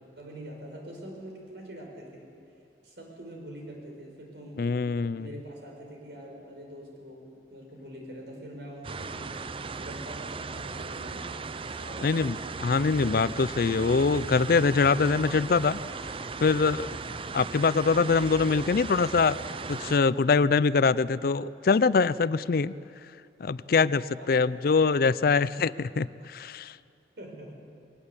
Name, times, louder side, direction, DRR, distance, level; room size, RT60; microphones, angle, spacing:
voice 1, 0.2-2.3 2.8-4.7 5.1-9.4 9.8-11.3 11.8-12.3 17.1-17.4 23.6-24.6 27.2-27.5, right 1 dB, 70° right, 0 dB, 5.3 m, -44 dB
voice 2, 4.6-5.3 12.0-15.8 16.4-16.9 17.3-19.4 19.7-22.7 23.4-26.8, left 4 dB, 55° left, 18 dB, 0.4 m, -24 dB
sound 1, 8.8-20.0, right 4 dB, 30° right, 0.5 m, -37 dB
22.0 x 18.5 x 8.3 m, 2.5 s
head